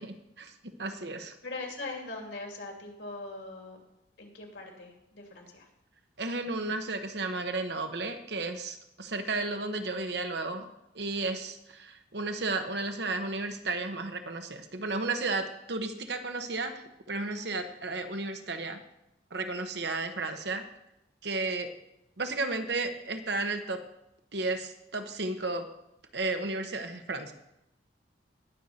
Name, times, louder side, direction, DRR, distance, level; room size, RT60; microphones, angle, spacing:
voice 1, 0.0-1.4 6.2-10.7 10.9-18.8 19.3-20.7 21.2-21.7 22.2-23.9 24.3-25.7 26.1-27.3, right 3 dB, 60° right, 7 dB, 1.1 m, -33 dB
voice 2, 1.4-3.8 4.2-5.7, left 2 dB, 65° left, 1 dB, 2.8 m, -41 dB
19.0 x 6.6 x 4.3 m, 0.84 s
head